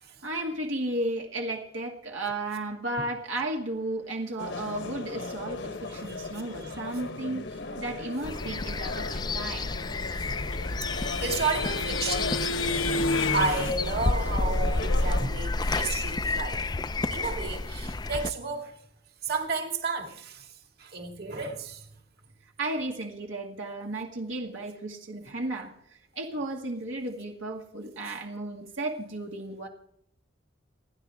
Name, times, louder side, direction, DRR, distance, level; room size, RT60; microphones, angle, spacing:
voice 1, 0.2-9.7 22.6-25.7 26.1-29.7, right 2 dB, 80° right, 2.2 m, -34 dB
sound 1, 4.4-15.3, left 3 dB, 60° left, 1.1 m, -37 dB
sound 2, 8.2-18.3, left 2 dB, 20° left, 0.4 m, -30 dB
sound 3, 9.9-13.7, left 3 dB, 80° left, 0.9 m, -31 dB
voice 2, 10.8-12.9 13.3-16.6 17.1-18.7 19.2-20.5 20.8-21.9, right 4 dB, 50° right, 2.4 m, -32 dB
29.0 x 10.5 x 3.6 m
head